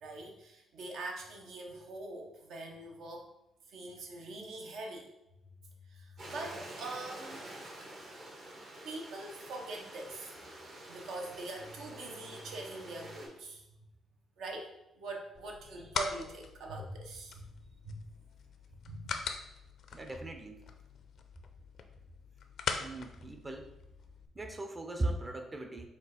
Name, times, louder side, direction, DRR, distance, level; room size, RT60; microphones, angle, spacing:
voice 1, 0.0-3.3 3.7-5.1 5.6-7.4 8.8-10.3 10.9-13.6 14.4-17.4 17.8-18.0 18.8-19.3, right 2 dB, 75° right, 1 dB, 0.8 m, -43 dB
Stream, 6.2-13.3, right 1 dB, 60° right, 1.4 m, -48 dB
sound 1, 15.3-24.3, left 5 dB, 65° left, 0.4 m, -42 dB
voice 2, 19.9-20.7 22.8-23.7 24.3-25.9, right 2 dB, 25° right, 5 dB, 0.5 m, -38 dB
4.3 x 2.4 x 4.3 m, 0.89 s
cardioid pair, 90°, 0 cm